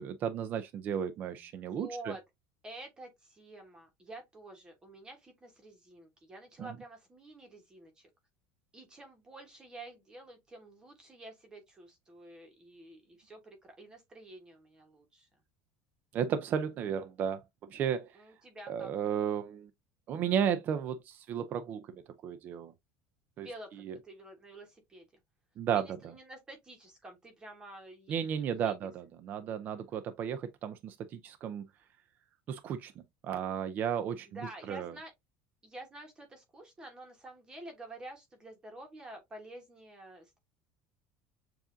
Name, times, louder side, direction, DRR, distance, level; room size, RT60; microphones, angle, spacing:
voice 1, 0.0-2.1 6.6-6.7 16.1-17.4 17.7-18.1 18.7-19.7 20.1-22.7 23.4-23.5 23.9-24.0 25.6-25.8 28.1-31.6 32.5-32.9 33.2-34.3 34.7-34.9, right 8 dB, 35° right, 0.4 m, -33 dB
voice 2, 1.7-2.2 2.6-8.1 8.7-15.3 18.1-18.9 23.4-25.1 25.7-28.8 34.2-35.1 35.6-40.4, right 1 dB, 15° right, 1.1 m, -49 dB
7.2 x 2.5 x 2.5 m
cardioid pair, 155°, 5 cm